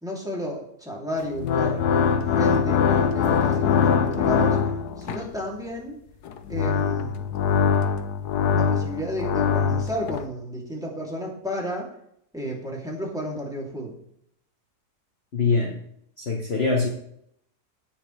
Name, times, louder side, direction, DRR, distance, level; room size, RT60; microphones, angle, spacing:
voice 1, 0.0-4.6 5.0-6.0 6.5-7.2 8.5-11.9 12.3-13.9, equal, ahead, -3 dB, 3.0 m, -32 dB
sound 1, 1.2-5.3 6.2-10.2, left 7 dB, 80° left, 1.4 m, -23 dB
voice 2, 15.3-15.8 16.2-16.9, left 4 dB, 45° left, 1 dB, 1.4 m, -23 dB
17.0 x 7.2 x 3.4 m, 0.71 s
omnidirectional pair, 1.7 m